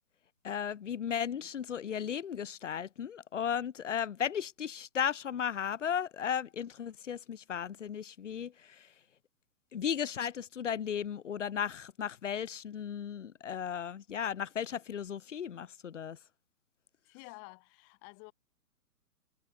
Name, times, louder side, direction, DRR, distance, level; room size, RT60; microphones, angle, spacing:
voice 1, 0.4-8.9 9.7-16.2, left 8 dB, 50° left, 0.7 m, -35 dB
voice 2, 17.0-18.3, left 40 dB or more, 25° left, 5.1 m, -51 dB
figure-of-eight pair, 130°, 46 cm